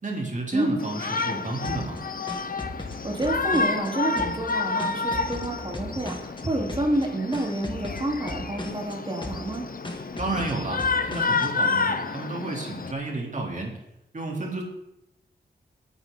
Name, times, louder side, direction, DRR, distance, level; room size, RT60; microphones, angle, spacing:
voice 1, 0.0-2.0 10.2-10.8 11.1-13.8 14.1-14.6, right 2 dB, 45° right, -1 dB, 3.6 m, -31 dB
Shout, 0.8-12.9, left 4 dB, 55° left, 1.0 m, -30 dB
sound 1, 1.6-3.9 4.2-6.4 6.7-7.0 7.3-8.9 9.2-9.6 9.8-11.5, left 1 dB, 25° left, 2.2 m, -37 dB
voice 2, 3.0-9.6, right 1 dB, 30° right, -1 dB, 4.1 m, -28 dB
21.0 x 10.0 x 4.1 m, 0.88 s
wide cardioid pair, 75°, 18 cm